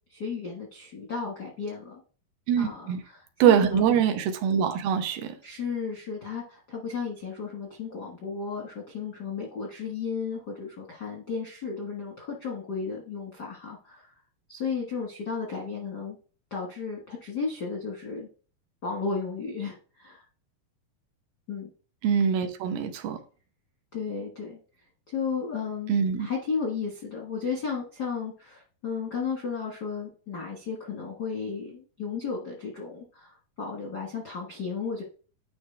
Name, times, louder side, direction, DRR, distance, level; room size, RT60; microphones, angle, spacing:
voice 1, 0.1-2.0 2.6-3.8 5.4-14.1 14.5-16.2 16.5-18.3 18.8-20.2 21.5-21.7 23.9-24.6 25.1-35.0, left 5 dB, 60° left, 1.0 m, -34 dB
voice 2, 2.5-3.0 3.4-5.3 22.0-23.2 25.9-26.3, right 8 dB, 90° right, 2.8 m, -23 dB
10.5 x 4.3 x 3.3 m
omnidirectional pair, 4.2 m